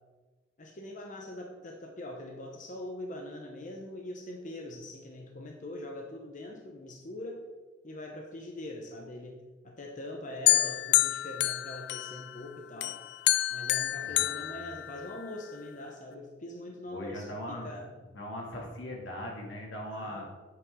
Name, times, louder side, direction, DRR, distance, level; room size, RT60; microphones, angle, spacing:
voice 1, 0.6-7.4 7.8-13.0 13.5-17.9 19.9-20.3, left 1 dB, 45° left, 1 dB, 0.9 m, -42 dB
sound 1, 10.5-12.4 12.8-15.3, left 14 dB, 65° left, 0.3 m, -28 dB
voice 2, 14.0-14.7 16.9-17.7 18.1-20.3, equal, 90° left, -1 dB, 2.4 m, -40 dB
9.3 x 7.8 x 3.7 m, 1.3 s
head